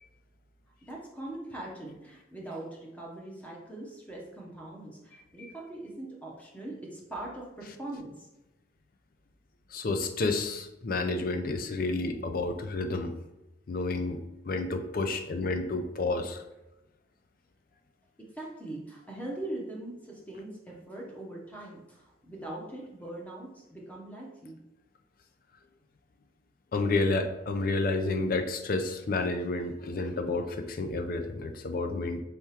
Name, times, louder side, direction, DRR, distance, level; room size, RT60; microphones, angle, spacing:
voice 1, 0.8-8.3 18.3-24.6, right 1 dB, 10° left, -3 dB, 0.7 m, -41 dB
voice 2, 9.7-13.2 13.7-14.2 14.4-16.4 26.7-32.2, left 3 dB, 50° left, 7 dB, 0.4 m, -30 dB
4.6 x 3.5 x 2.9 m, 0.98 s
head